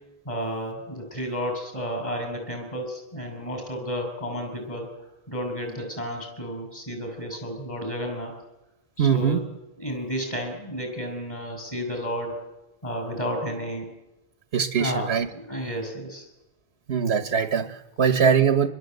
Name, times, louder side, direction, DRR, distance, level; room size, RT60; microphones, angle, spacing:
voice 1, 0.3-4.9 5.3-8.3 9.0-9.4 9.8-12.4 12.8-13.9 14.8-16.3, equal, 30° left, 3 dB, 6.9 m, -32 dB
voice 2, 9.0-9.4 14.5-15.3 16.9-18.7, right 7 dB, 70° right, 10 dB, 1.3 m, -22 dB
26.0 x 21.0 x 8.0 m, 1.0 s
omnidirectional pair, 1.1 m